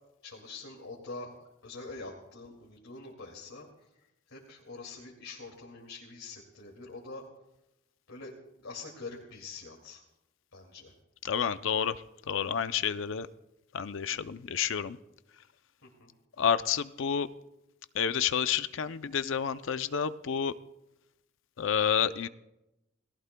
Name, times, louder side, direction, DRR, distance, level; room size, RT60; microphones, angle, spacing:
voice 1, 0.2-1.3 1.6-7.2 8.1-8.4 8.6-10.0 10.5-10.9 15.8-16.1, left 3 dB, 80° left, -2 dB, 2.4 m, -45 dB
voice 2, 11.2-12.0 12.3-13.3 13.7-15.0 16.4-17.3 17.9-20.5 21.6-22.3, left 7 dB, 65° left, 12 dB, 0.5 m, -29 dB
30.0 x 18.0 x 2.3 m, 0.92 s
head